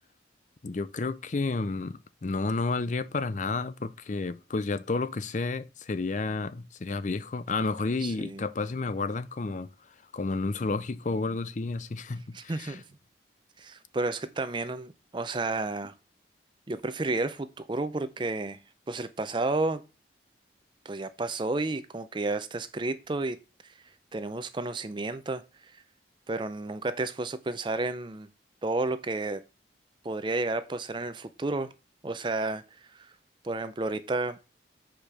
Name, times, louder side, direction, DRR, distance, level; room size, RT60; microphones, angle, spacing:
voice 1, 0.6-9.7 10.1-12.8, left 3 dB, 40° left, 0.5 m, -31 dB
voice 2, 8.0-8.4 12.3-12.8 13.6-15.9 16.7-18.6 18.9-19.8 20.8-23.4 23.6-23.7 24.1-25.8 26.3-28.3 28.6-29.4 30.0-31.7 32.0-32.6 32.9-33.1 33.4-34.4, right 2 dB, 25° right, 0.5 m, -31 dB
6.6 x 5.1 x 5.9 m
head